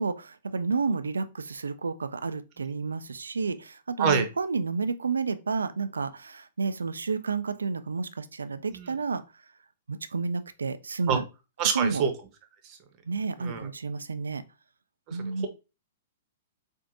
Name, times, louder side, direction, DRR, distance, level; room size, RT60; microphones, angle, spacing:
voice 1, 0.0-9.2 9.9-11.2 11.6-12.0 13.0-14.4 15.1-15.5, right 4 dB, 85° right, 0.3 m, -30 dB
voice 2, 11.6-12.1 13.4-13.7 15.1-15.5, right 6 dB, 35° right, 0.9 m, -26 dB
4.4 x 2.6 x 2.6 m
hypercardioid pair, 115°, 0 cm